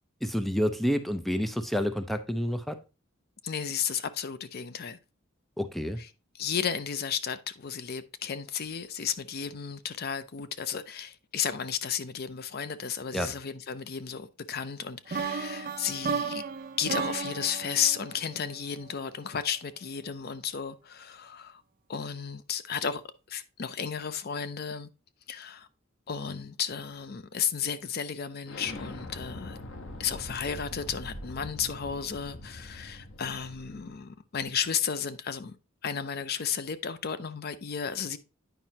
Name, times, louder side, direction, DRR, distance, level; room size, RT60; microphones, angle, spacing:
voice 1, 0.2-2.8 5.6-6.0 13.1-13.3, equal, ahead, 0.5 m, -29 dB
voice 2, 3.4-5.0 6.0-16.4 16.8-21.6 21.9-23.0 23.3-24.9 25.3-25.7 26.1-29.6 30.0-35.6 35.8-38.2, left 7 dB, 50° left, 0.5 m, -33 dB
sound 1, 15.1-19.1, right 5 dB, 45° right, 0.7 m, -34 dB
Explosion, 28.5-34.0, left 1 dB, 90° left, 1.0 m, -43 dB
9.1 x 5.4 x 2.8 m
head